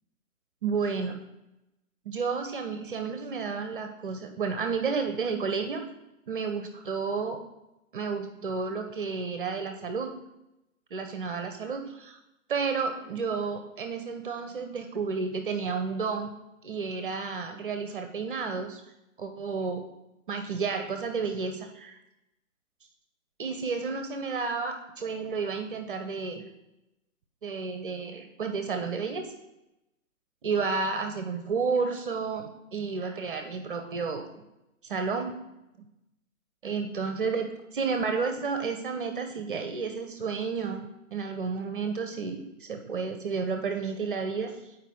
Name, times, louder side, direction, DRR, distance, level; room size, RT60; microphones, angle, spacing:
voice 1, 0.6-1.2 2.1-5.9 6.3-7.4 7.9-10.2 10.9-12.2 12.5-16.3 16.6-18.8 19.2-19.9 20.3-22.0 23.4-26.4 27.4-29.3 30.4-34.3 34.8-35.3 36.6-44.8, right 5 dB, 40° right, 6 dB, 0.6 m, -31 dB
9.1 x 4.7 x 3.6 m, 0.92 s
figure-of-eight pair, 130°, 42 cm